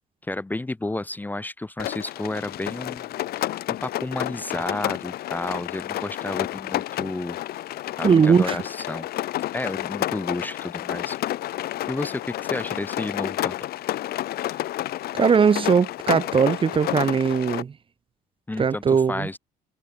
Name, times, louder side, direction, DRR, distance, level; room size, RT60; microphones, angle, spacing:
voice 1, 0.3-7.4 8.0-9.1 9.5-11.2 11.9-13.6 18.5-19.4, left 2 dB, 10° left, 1.0 m, -31 dB
Rain, 1.8-17.6, left 14 dB, 65° left, 0.9 m, -30 dB
voice 2, 8.0-8.6 15.1-17.7 18.6-19.3, right 6 dB, 30° right, 1.1 m, -19 dB
cardioid pair, 110°, 17 cm